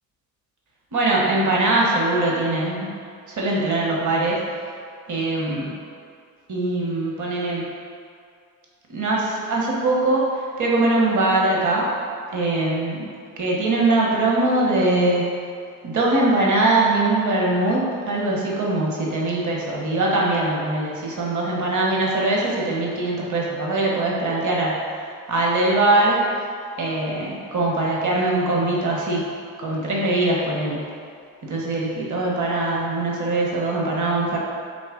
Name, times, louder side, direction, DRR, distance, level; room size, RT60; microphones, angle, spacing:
voice 1, 0.9-2.9 3.3-4.4 5.1-5.7 6.5-7.7 8.9-11.9 12.3-13.1 13.4-15.3 15.8-26.2 26.8-29.2 29.6-30.9 31.4-34.4, right 2 dB, 45° right, -3 dB, 1.1 m, -22 dB
4.1 x 2.9 x 3.7 m, 2.3 s
supercardioid pair, 65°, 40 cm